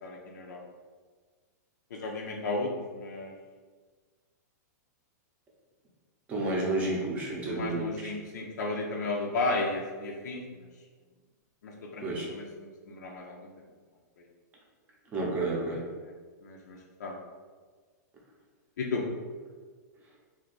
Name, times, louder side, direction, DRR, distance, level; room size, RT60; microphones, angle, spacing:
voice 1, 0.0-0.6 1.9-3.3 7.5-10.4 11.6-12.4 12.9-13.5 16.4-17.2 18.8-19.0, left 3 dB, 85° left, -1 dB, 0.5 m, -34 dB
voice 2, 6.3-8.1 12.0-12.3 15.1-15.8, right 2 dB, 15° right, -3 dB, 0.6 m, -30 dB
2.6 x 2.3 x 3.8 m, 1.5 s
supercardioid pair, 165°, 9 cm